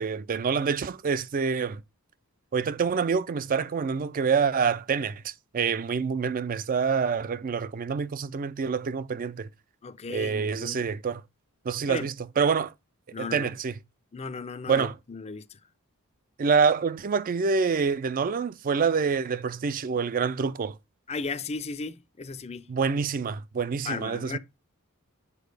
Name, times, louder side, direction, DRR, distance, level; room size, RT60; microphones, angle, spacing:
voice 1, 0.0-1.8 2.5-9.5 10.1-11.2 11.6-12.7 13.2-13.8 14.7-14.9 16.4-20.8 22.7-24.4, right 5 dB, 40° right, 0.4 m, -26 dB
voice 2, 9.8-10.8 11.9-12.1 13.1-13.5 14.1-15.6 21.1-22.7 23.9-24.4, left 4 dB, 30° left, 0.5 m, -35 dB
8.4 x 4.5 x 3.3 m
head